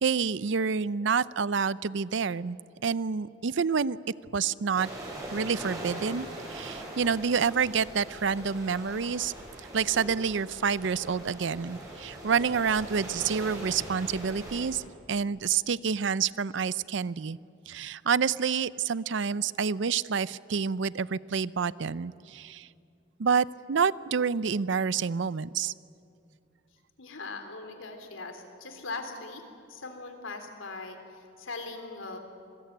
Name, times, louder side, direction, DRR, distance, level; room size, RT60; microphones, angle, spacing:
voice 1, 0.0-2.6 2.8-4.0 4.3-4.9 5.3-9.3 9.7-17.4 17.7-22.7 23.2-25.7, right 6 dB, 65° right, 19 dB, 0.5 m, -28 dB
sound 1, 4.7-14.7, right 1 dB, 20° right, 7.1 m, -41 dB
voice 2, 27.0-29.4 29.7-32.2, left 3 dB, 85° left, 6 dB, 3.3 m, -40 dB
26.5 x 20.5 x 9.3 m, 2.5 s
head